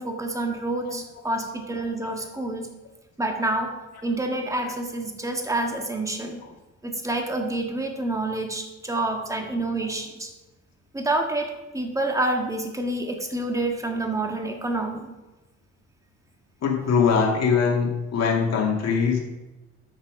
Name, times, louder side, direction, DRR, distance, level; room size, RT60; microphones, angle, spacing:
voice 1, 0.0-2.7 3.2-3.7 4.0-6.4 6.8-10.3 10.9-15.1, right 2 dB, 10° right, 3 dB, 1.7 m, -28 dB
voice 2, 16.6-19.2, left 6 dB, 60° left, -1 dB, 2.2 m, -22 dB
9.6 x 6.6 x 5.1 m, 1.1 s
cardioid pair, 90°, 30 cm